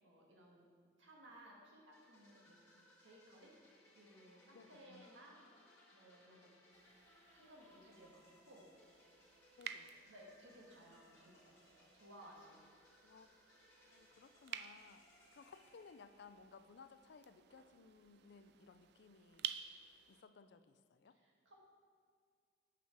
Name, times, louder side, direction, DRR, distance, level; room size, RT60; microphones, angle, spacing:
voice 1, 0.0-0.7 1.0-2.6 3.0-3.6 3.9-5.4 5.9-6.5 7.3-8.7 10.1-12.6 21.1-21.6, right 1 dB, 85° right, -1 dB, 1.6 m, -60 dB
sound 1, 1.9-16.7, left 1 dB, 15° left, 1.7 m, -68 dB
voice 2, 4.5-5.1 9.6-10.1 13.0-13.3 13.9-19.5 20.1-21.2, left 5 dB, 60° left, 11 dB, 0.4 m, -60 dB
sound 2, 6.7-20.2, right 10 dB, 60° right, 0.3 m, -53 dB
8.3 x 6.1 x 4.5 m, 2.1 s
head